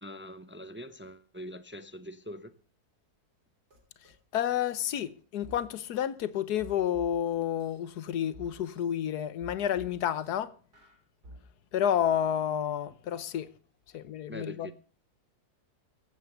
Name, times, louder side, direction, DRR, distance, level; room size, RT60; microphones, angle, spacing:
voice 1, 0.0-2.5 14.3-14.7, equal, 20° right, 0.3 m, -43 dB
sound 1, 3.7-3.8 4.0-4.6 5.4-5.6 6.6-7.8 8.3-8.8 9.4-10.3 10.7-11.4, right 1 dB, 80° right, 3.8 m, -50 dB
voice 2, 4.3-10.5 11.7-13.5 13.9-14.7, left 10 dB, 80° left, 1.4 m, -30 dB
15.0 x 8.8 x 6.7 m
omnidirectional pair, 1.7 m